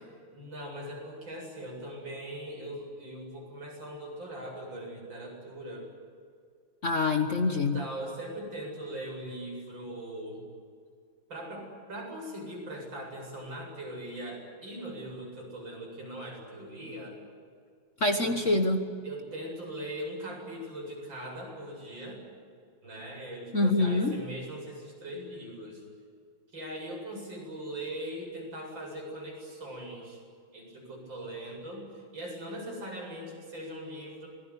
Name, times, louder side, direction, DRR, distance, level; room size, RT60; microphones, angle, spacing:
voice 1, 0.3-5.9 7.5-10.4 11.3-17.2 18.1-18.4 19.0-22.3 22.8-25.8 26.5-30.2 30.5-34.3, right 1 dB, 60° right, 0 dB, 8.8 m, -40 dB
voice 2, 6.8-7.8 18.0-18.8 23.5-24.2, left 2 dB, 40° left, 5 dB, 1.5 m, -25 dB
27.0 x 20.5 x 9.8 m, 2.1 s
omnidirectional pair, 2.3 m